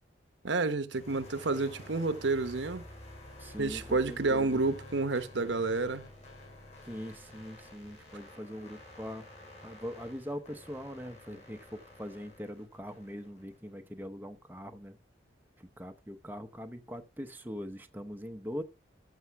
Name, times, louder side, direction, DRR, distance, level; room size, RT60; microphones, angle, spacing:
voice 1, 0.4-2.8 3.6-6.0, right 3 dB, 80° right, 1.0 m, -30 dB
sound 1, 0.9-13.7, left 1 dB, 35° left, 6.3 m, -50 dB
voice 2, 3.4-4.6 6.8-9.2 9.6-15.0 15.6-18.6, equal, 10° right, 0.8 m, -42 dB
14.0 x 6.2 x 4.6 m
head